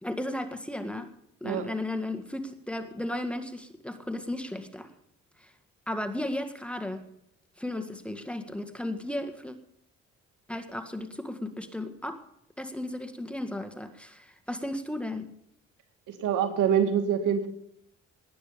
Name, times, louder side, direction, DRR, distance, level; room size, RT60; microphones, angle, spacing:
voice 1, 0.0-1.1 1.4-4.9 5.4-5.5 5.9-7.0 7.6-9.6 10.5-12.2 12.6-15.3, left 1 dB, 5° left, 8 dB, 1.8 m, -35 dB
voice 2, 16.1-17.5, right 8 dB, 85° right, 6 dB, 2.5 m, -25 dB
19.5 x 9.4 x 5.1 m, 0.76 s
cardioid pair, 90°, 30 cm